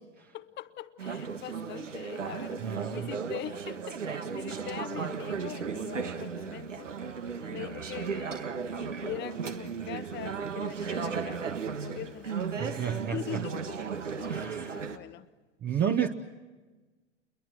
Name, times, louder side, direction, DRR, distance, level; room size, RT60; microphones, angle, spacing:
voice 1, 0.3-12.8 13.1-13.8 14.1-15.3, left 12 dB, 30° left, 1.0 m, -42 dB
Conversation / Chatter, 1.0-15.0, right 6 dB, 85° right, 1.5 m, -35 dB
voice 2, 2.6-3.1 12.6-13.4 14.2-15.0 15.6-16.1, right 8 dB, 25° right, 1.1 m, -31 dB
29.5 x 23.0 x 6.1 m
hypercardioid pair, 100°, 36 cm